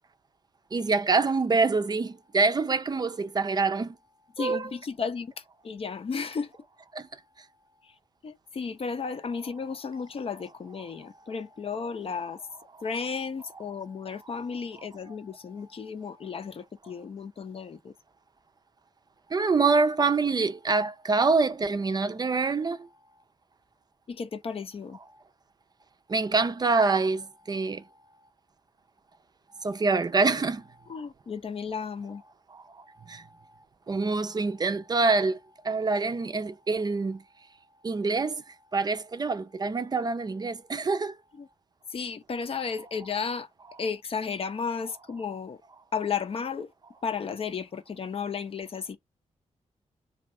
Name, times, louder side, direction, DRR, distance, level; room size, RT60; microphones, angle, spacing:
voice 1, 0.7-3.9 4.4-4.7 6.9-7.0 19.3-22.8 26.1-27.8 29.6-30.6 33.1-33.2 33.9-35.4 35.6-37.2 37.8-38.4 38.7-41.1, right 4 dB, 35° right, 0.5 m, -25 dB
voice 2, 4.4-6.5 7.8-7.9 8.2-12.4 12.8-17.9 24.1-25.0 30.9-32.2 41.4-41.5 41.9-43.5 43.8-45.6 45.9-46.7 47.0-49.0, left 5 dB, 50° left, 0.6 m, -34 dB
2.7 x 2.4 x 4.1 m
cardioid pair, 75°, 12 cm